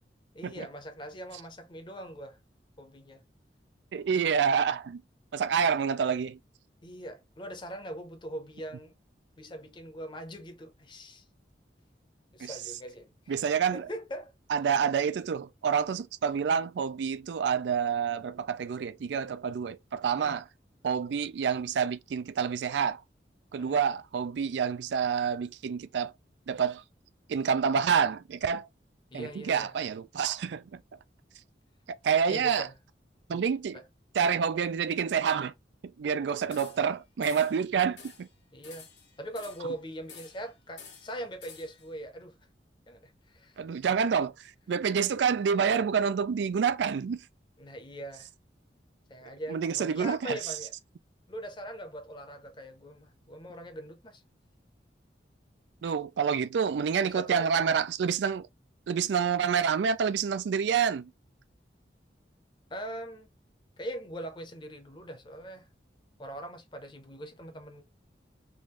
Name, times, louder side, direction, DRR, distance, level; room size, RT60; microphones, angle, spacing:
voice 1, 0.3-2.4 2.8-3.2 6.8-8.9 9.4-11.2 12.3-13.1 13.7-14.3 20.2-20.4 23.6-23.8 29.1-29.7 32.3-32.7 33.7-33.8 38.5-38.9 39.2-42.4 42.9-43.6 47.6-48.3 49.1-50.7 51.3-54.2 55.8-55.9 57.0-57.5 62.7-63.3 63.8-65.7 66.2-67.8, right 1 dB, 25° left, 0.7 m, -41 dB
voice 2, 3.9-5.0 5.3-6.4 12.4-12.6 13.3-13.9 14.5-20.4 20.8-23.0 23.5-26.1 26.5-26.8 27.3-28.7 29.1-30.8 31.9-32.7 33.3-33.8 34.1-35.5 35.8-38.3 43.6-47.3 49.5-50.5 55.8-58.5 58.9-61.1, right 7 dB, 80° right, 0.4 m, -28 dB
sound 1, 36.5-36.9 37.2-37.6 38.0-38.3 38.6-39.7 40.1-40.5 40.8-41.9, left 6 dB, 85° left, 1.3 m, -50 dB
3.6 x 2.5 x 3.0 m
head